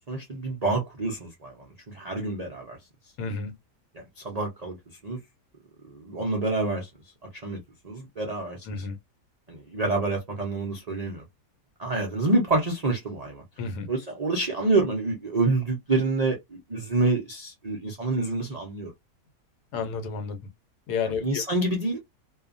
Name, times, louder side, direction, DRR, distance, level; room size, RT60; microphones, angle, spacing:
voice 1, 0.1-2.8 3.9-4.8 5.0-5.2 5.9-6.9 7.4-8.9 9.5-11.2 11.8-13.4 13.9-18.9 21.0-22.0, right 2 dB, 60° right, 0.4 m, -27 dB
voice 2, 3.2-3.5 8.7-9.0 13.6-13.9 19.7-20.4 20.9-21.4, left 5 dB, 75° left, 1.2 m, -31 dB
2.6 x 2.3 x 2.5 m
omnidirectional pair, 1.8 m